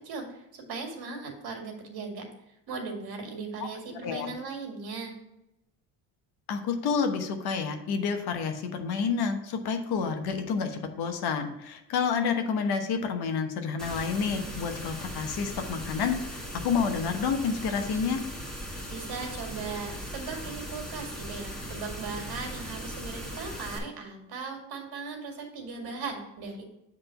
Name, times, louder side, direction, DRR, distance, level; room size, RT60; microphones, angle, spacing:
voice 1, 0.0-2.3 2.7-5.1 18.9-26.6, right 4 dB, 65° right, 2 dB, 2.0 m, -38 dB
voice 2, 3.6-4.3 6.5-18.2, left 5 dB, 65° left, 6 dB, 1.1 m, -29 dB
sound 1, 13.8-23.8, equal, ahead, 1.6 m, -39 dB
7.0 x 3.7 x 5.8 m, 0.86 s
cardioid pair, 100°, 42 cm